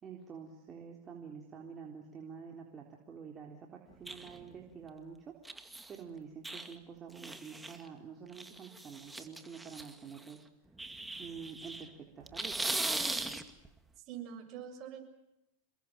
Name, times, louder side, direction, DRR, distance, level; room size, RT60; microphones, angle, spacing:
voice 1, 0.0-5.3 5.9-10.4 11.2-12.6, right 6 dB, 30° right, 1 dB, 3.9 m, -48 dB
sound 1, 4.1-4.6 5.5-6.0 6.4-6.7 7.2-7.9 8.3-10.3 10.8-11.9 12.2-13.7, right 2 dB, 10° right, 2.3 m, -39 dB
voice 2, 14.0-15.0, right 9 dB, 45° right, 6 dB, 6.9 m, -45 dB
28.0 x 22.0 x 7.6 m, 0.84 s
hypercardioid pair, 105°, 0 cm